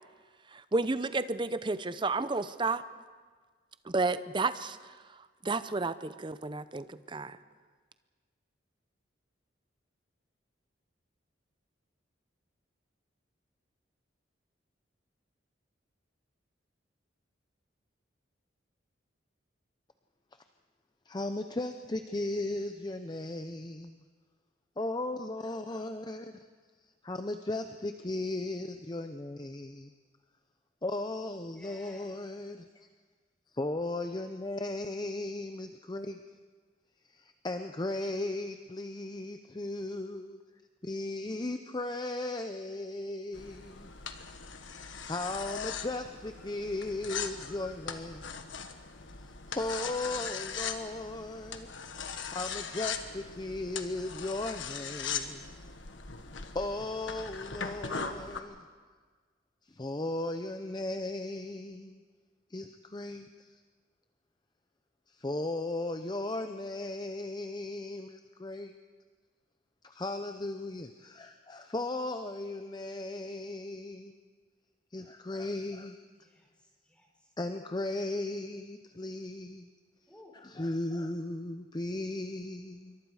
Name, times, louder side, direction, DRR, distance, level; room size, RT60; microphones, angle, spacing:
voice 1, 0.5-2.8 3.9-4.8 5.4-7.4, right 3 dB, 25° right, 13 dB, 0.7 m, -31 dB
voice 2, 21.1-24.0 24.8-26.3 27.0-29.9 30.8-32.9 33.5-36.2 37.1-40.4 40.8-43.9 44.6-48.3 49.5-51.7 52.3-55.5 56.5-58.7 59.7-62.0 62.5-63.6 65.1-68.7 69.8-74.2 74.9-76.1 77.4-79.7 80.4-83.0, left 2 dB, 20° left, 7 dB, 0.6 m, -36 dB
voice 3, 31.5-32.2 76.2-77.3 80.1-80.4, left 1 dB, 5° left, 0 dB, 4.3 m, -57 dB
sound 1, 43.3-58.4, left 6 dB, 80° left, 1.5 m, -40 dB
27.0 x 23.5 x 4.9 m, 1.5 s
head